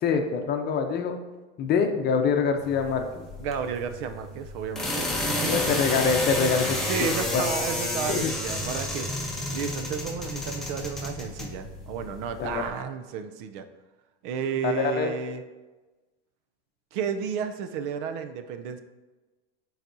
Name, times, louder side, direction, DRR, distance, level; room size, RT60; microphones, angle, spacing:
voice 1, 0.0-1.2 1.6-3.2 5.5-7.4 8.1-8.3 12.4-12.6 14.6-15.1, left 5 dB, 35° left, 5 dB, 0.8 m, -25 dB
sound 1, 2.6-12.7, left 1 dB, ahead, 1.0 m, -31 dB
voice 2, 3.4-5.1 5.4-5.7 6.6-9.1 9.5-13.7 14.2-15.4 16.9-18.8, right 7 dB, 60° right, 9 dB, 0.6 m, -32 dB
11.0 x 4.1 x 2.7 m, 1.2 s
supercardioid pair, 125°, 29 cm